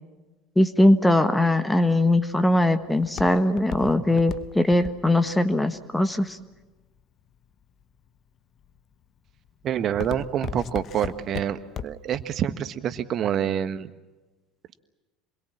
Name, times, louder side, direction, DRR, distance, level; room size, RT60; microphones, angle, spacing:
voice 1, 0.6-6.4, left 1 dB, 10° left, 10 dB, 1.4 m, -21 dB
Walk footsteps, 1.9-7.0 7.6-8.1 8.6-8.9 9.3-12.2 12.5-12.6, left 8 dB, 45° left, 1.0 m, -37 dB
voice 2, 9.6-13.9, right 9 dB, 45° right, 12 dB, 1.4 m, -27 dB
27.0 x 22.0 x 7.4 m, 1.2 s
hypercardioid pair, 70°, 0 cm